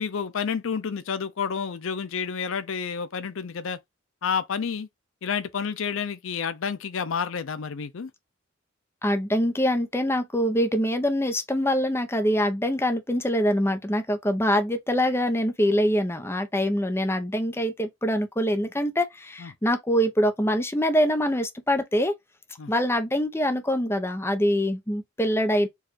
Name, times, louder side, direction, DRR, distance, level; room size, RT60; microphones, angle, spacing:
voice 1, 0.0-3.8 4.2-4.9 5.2-8.1 19.4-19.5 22.6-22.7, left 6 dB, 75° left, 0.5 m, -30 dB
voice 2, 9.0-22.1 22.7-25.7, equal, 10° left, 0.7 m, -24 dB
4.7 x 2.5 x 4.4 m
head